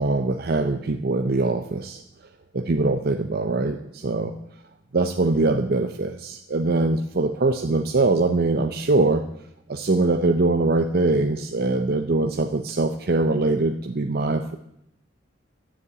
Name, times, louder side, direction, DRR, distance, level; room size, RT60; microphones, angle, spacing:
voice 1, 0.0-2.0 2.5-4.3 4.9-9.2 9.7-14.6, right 2 dB, 50° right, 6 dB, 0.7 m, -22 dB
13.0 x 7.4 x 9.6 m, 0.80 s
head